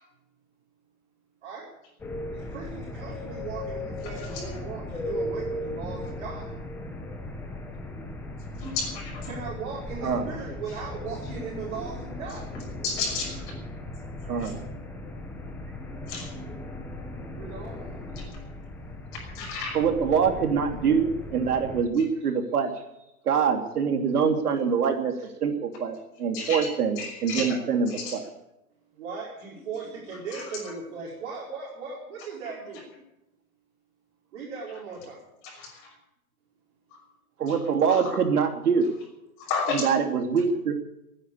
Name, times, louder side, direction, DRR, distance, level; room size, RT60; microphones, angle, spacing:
sound 1, 2.0-21.8, left 1 dB, 5° left, 1.0 m, -37 dB
voice 1, 2.3-6.5 9.3-12.5 17.3-18.1 25.2-25.3 29.0-32.9 34.3-35.2, right 5 dB, 50° right, -5 dB, 4.9 m, -38 dB
voice 2, 8.6-9.3 12.8-13.6 14.4-14.5 16.1-16.3 18.2-18.3 19.3-19.8 26.3-26.7 27.0-27.6 27.9-28.1 30.3-30.4 35.4-35.9 37.9-38.0 39.4-39.9, left 4 dB, 30° left, 1 dB, 6.0 m, -32 dB
voice 3, 14.3-14.6 19.7-22.7 23.2-25.1 25.4-28.2 37.4-38.9 39.7-40.7, right 6 dB, 80° right, 5 dB, 3.0 m, -24 dB
16.0 x 9.9 x 8.4 m, 0.88 s
hypercardioid pair, 160°, 45 cm